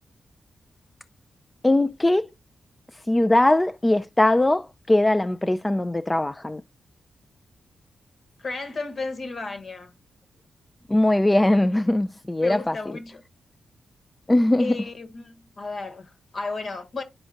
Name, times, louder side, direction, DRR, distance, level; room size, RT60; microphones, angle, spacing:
voice 1, 1.6-2.3 3.1-6.6 10.9-12.7 14.3-14.8, left 1 dB, 20° left, 0.3 m, -20 dB
voice 2, 8.4-9.9 12.4-13.2 14.6-17.0, left 3 dB, 60° left, 1.4 m, -33 dB
11.0 x 3.9 x 2.5 m
cardioid pair, 55°, 0 cm